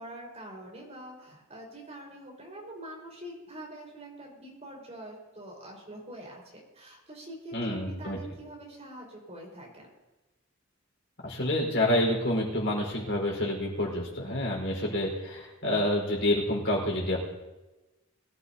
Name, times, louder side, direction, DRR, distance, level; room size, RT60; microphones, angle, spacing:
voice 1, 0.0-9.9, right 1 dB, 30° right, -1 dB, 4.6 m, -45 dB
voice 2, 7.5-8.2 11.2-17.2, left 1 dB, 55° left, -1 dB, 4.5 m, -28 dB
22.5 x 14.0 x 2.8 m, 1.1 s
head